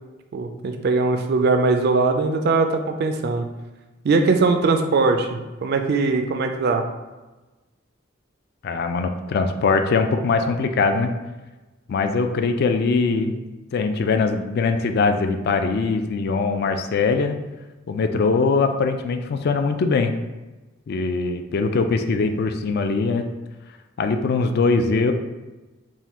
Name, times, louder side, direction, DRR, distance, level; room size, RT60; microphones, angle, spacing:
voice 1, 0.3-3.5 4.0-6.8, right 3 dB, 50° right, 6 dB, 0.3 m, -20 dB
voice 2, 8.6-11.1 11.9-13.4 13.7-17.4 17.9-20.1 20.9-23.2 24.0-25.1, left 4 dB, 50° left, 7 dB, 0.3 m, -21 dB
3.7 x 2.5 x 4.1 m, 1.1 s
head